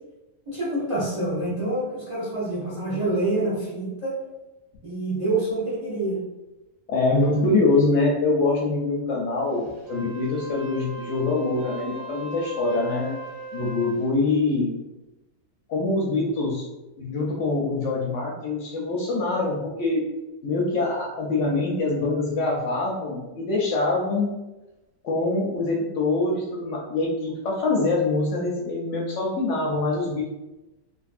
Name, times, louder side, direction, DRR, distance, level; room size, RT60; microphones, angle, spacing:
voice 1, 0.5-4.2 4.8-6.2, right 2 dB, 40° right, -8 dB, 0.5 m, -27 dB
voice 2, 6.9-9.6 9.9-13.1 13.5-14.7 15.7-16.7 17.0-20.0 20.4-24.4 25.0-30.3, left 3 dB, 65° left, -2 dB, 0.8 m, -24 dB
Wind instrument woodwind instrument, 9.8-14.1, right 1 dB, 70° right, 0.9 m, -38 dB
2.5 x 2.5 x 2.4 m, 1.0 s
omnidirectional pair, 1.5 m